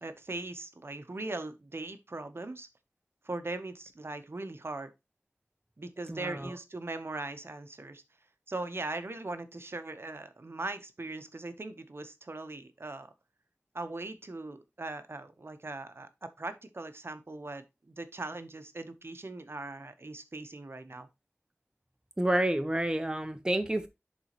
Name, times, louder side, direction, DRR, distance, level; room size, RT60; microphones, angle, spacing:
voice 1, 0.0-2.7 3.2-4.9 5.8-8.0 8.5-13.1 13.7-21.1, right 2 dB, 55° right, 0.9 m, -40 dB
voice 2, 6.1-6.5 22.2-23.9, right 1 dB, 15° right, 0.7 m, -29 dB
10.5 x 4.1 x 3.0 m
wide cardioid pair, 60°, 5 cm